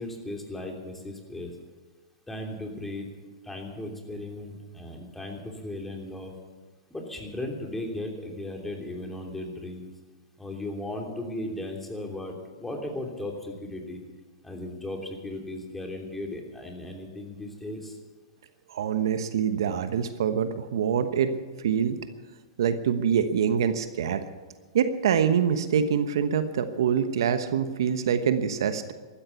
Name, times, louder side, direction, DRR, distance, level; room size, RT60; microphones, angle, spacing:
voice 1, 0.0-1.5 2.3-3.1 3.4-6.3 6.9-9.9 10.4-12.3 12.6-14.0 14.4-17.9, left 1 dB, 5° left, 2 dB, 3.1 m, -36 dB
voice 2, 18.7-21.4 21.6-22.0 22.6-24.2 24.7-28.9, right 7 dB, 70° right, 10 dB, 1.1 m, -25 dB
14.5 x 13.0 x 7.0 m, 1.3 s
hypercardioid pair, 120°, 2 cm